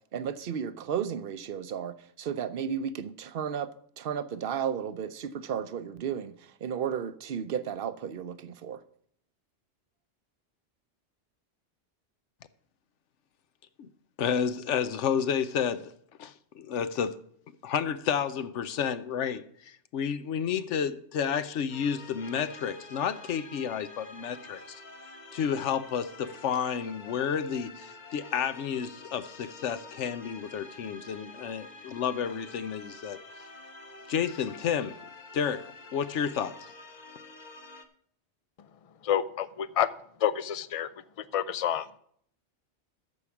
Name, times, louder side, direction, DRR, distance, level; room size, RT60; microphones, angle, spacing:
voice 1, 0.1-3.7 4.0-8.8, right 8 dB, 55° right, 0.8 m, -33 dB
voice 2, 14.2-15.9 16.2-17.2 17.6-24.8 25.3-33.2 34.1-35.0 35.3-36.7, left 7 dB, 75° left, 1.0 m, -31 dB
sound 1, 21.7-37.8, left 3 dB, 40° left, 1.1 m, -48 dB
voice 3, 38.6-39.9 40.2-42.0, left 10 dB, 60° left, 0.3 m, -30 dB
13.5 x 4.8 x 7.1 m
omnidirectional pair, 1.2 m